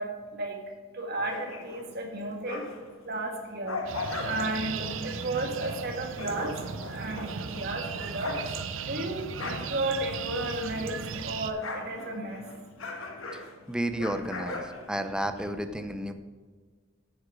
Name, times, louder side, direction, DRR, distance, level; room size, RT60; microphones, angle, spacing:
voice 1, 0.0-13.7 14.8-14.9, right 2 dB, 50° right, 3 dB, 1.7 m, -34 dB
sound 1, 1.1-3.0 3.3-10.9 11.2-15.5, left 3 dB, 80° left, 1.4 m, -39 dB
sound 2, 3.9-11.5, right 6 dB, 65° right, 0.6 m, -37 dB
voice 2, 13.3-16.1, right 1 dB, 5° right, 8 dB, 0.6 m, -32 dB
9.7 x 8.4 x 4.8 m, 1.5 s
head